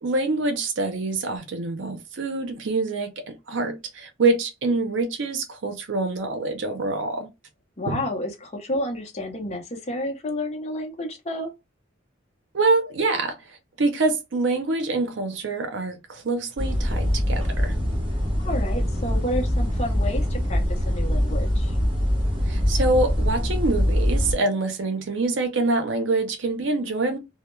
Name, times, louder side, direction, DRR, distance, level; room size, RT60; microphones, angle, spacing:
voice 1, 0.0-7.3 7.9-8.0 12.5-17.7 22.5-27.2, right 3 dB, 75° right, 0.5 m, -25 dB
voice 2, 7.8-11.5 18.4-21.8, left 1 dB, 35° left, 0.6 m, -30 dB
sound 1, 16.6-24.3, equal, 30° right, 0.9 m, -23 dB
2.1 x 2.0 x 3.0 m
head